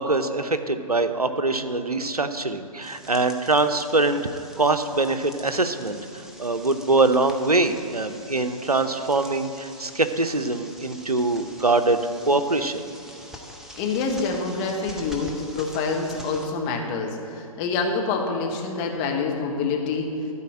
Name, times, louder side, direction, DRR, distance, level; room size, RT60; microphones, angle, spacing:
voice 1, 0.0-6.0 6.4-12.0 12.3-12.8, right 2 dB, 85° right, 10 dB, 0.7 m, -23 dB
sound 1, 2.8-16.5, equal, ahead, 0.4 m, -45 dB
voice 2, 13.8-20.1, left 4 dB, 20° left, 1 dB, 1.0 m, -26 dB
12.5 x 4.3 x 7.4 m, 2.7 s
figure-of-eight pair, 130°, 19 cm